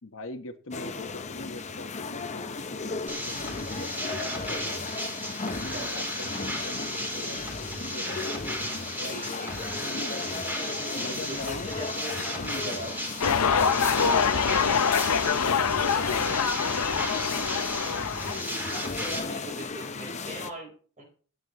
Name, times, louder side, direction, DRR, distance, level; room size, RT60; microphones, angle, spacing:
voice 1, 0.0-4.6 5.5-10.2 10.9-11.7 12.4-13.0 13.7-14.4 15.2-18.2, left 2 dB, 60° left, 7 dB, 1.1 m, -42 dB
sound 1, 0.7-20.5, left 4 dB, 30° left, 0.7 m, -36 dB
sound 2, 3.1-19.2, equal, 10° right, 3.2 m, -35 dB
voice 2, 5.7-6.0 9.0-9.7 11.1-12.2 12.6-12.9 14.1-14.8 15.9-16.2 19.2-21.0, right 1 dB, 35° right, 2 dB, 3.8 m, -41 dB
sound 3, 13.2-18.4, left 6 dB, 80° left, 0.7 m, -25 dB
15.5 x 9.0 x 3.0 m, 0.43 s
head